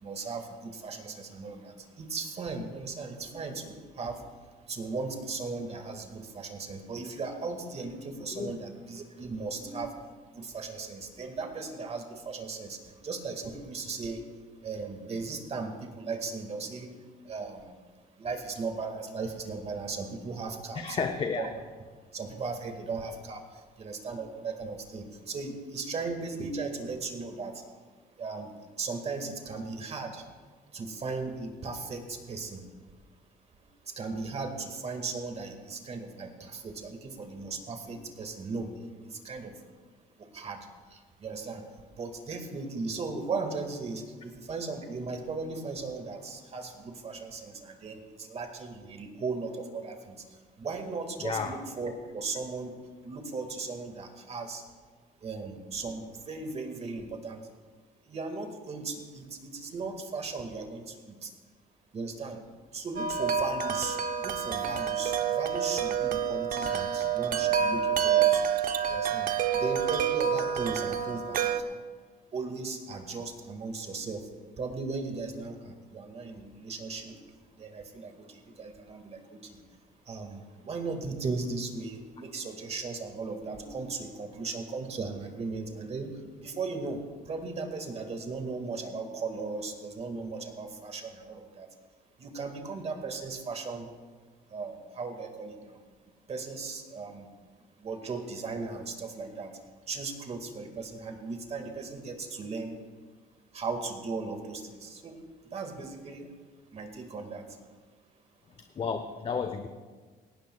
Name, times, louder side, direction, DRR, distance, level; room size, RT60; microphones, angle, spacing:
voice 1, 0.0-4.2 4.7-10.0 10.3-14.2 14.6-16.9 17.3-17.7 18.2-21.1 21.4-21.5 22.1-27.6 28.2-28.5 28.8-30.2 30.7-32.6 33.9-38.7 39.0-39.6 40.2-41.7 42.0-50.2 50.6-52.7 53.0-54.6 55.2-57.5 58.1-61.3 61.9-62.4 62.7-68.5 68.8-69.3 69.5-71.8 72.3-74.3 74.6-77.2 77.6-79.6 80.1-86.1 86.4-91.7 92.2-93.9 94.5-95.8 96.3-97.3 97.8-99.5 99.9-102.8 103.5-105.2 105.5-106.3 106.7-107.4, right 4 dB, 40° right, 5 dB, 1.9 m, -37 dB
voice 2, 20.7-21.5 51.2-51.6 108.8-109.7, left 5 dB, 35° left, 7 dB, 0.8 m, -32 dB
Wind chime, 63.0-71.6, right 8 dB, 55° right, 0.8 m, -28 dB
18.0 x 16.0 x 2.3 m, 1.5 s
cardioid pair, 110°, 17 cm